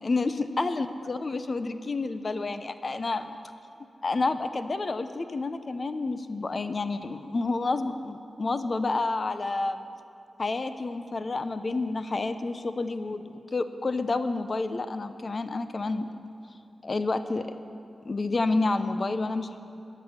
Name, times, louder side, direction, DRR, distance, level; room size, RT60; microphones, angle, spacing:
voice 1, 0.0-3.3 4.0-9.8 10.4-16.1 16.8-17.5 18.0-19.6, left 3 dB, 45° left, 10 dB, 0.6 m, -29 dB
13.0 x 6.2 x 9.6 m, 2.6 s
wide cardioid pair, 75°, 0 cm